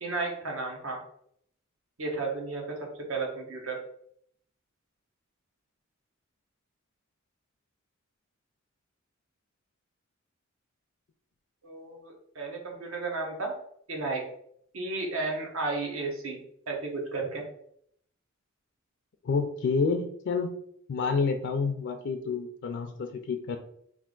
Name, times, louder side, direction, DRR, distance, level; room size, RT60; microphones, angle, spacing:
voice 1, 0.0-1.0 2.0-3.8 11.6-13.5 13.9-14.2 14.7-16.4 16.7-17.4, right 3 dB, 75° right, 0 dB, 1.0 m, -33 dB
voice 2, 19.2-20.6 20.9-23.6, left 4 dB, 55° left, 6 dB, 0.3 m, -29 dB
3.2 x 2.5 x 3.7 m, 0.67 s
head